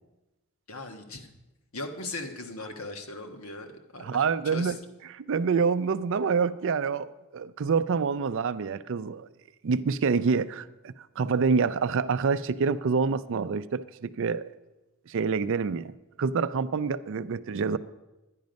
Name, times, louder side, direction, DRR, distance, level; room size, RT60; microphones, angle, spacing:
voice 1, 0.7-1.3 1.7-4.7, left 2 dB, 75° left, 5 dB, 1.3 m, -39 dB
voice 2, 4.0-4.8 5.1-9.3 9.6-14.5 15.1-15.9 16.2-17.8, right 5 dB, 60° right, 14 dB, 0.4 m, -27 dB
10.5 x 10.5 x 5.2 m, 1.0 s
head